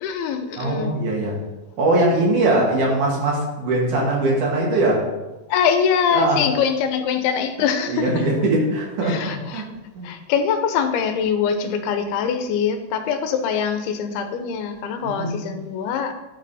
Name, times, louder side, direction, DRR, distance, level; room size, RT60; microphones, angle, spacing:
voice 1, 0.0-1.0 5.5-8.3 9.0-9.7 10.0-16.1, left 7 dB, 85° left, 7 dB, 2.6 m, -23 dB
voice 2, 0.6-1.4 1.8-5.0 6.1-6.4 7.9-9.7 10.0-10.1 15.0-15.5, right 2 dB, 60° right, -2 dB, 2.8 m, -21 dB
11.5 x 5.3 x 4.1 m, 1.1 s
omnidirectional pair, 4.5 m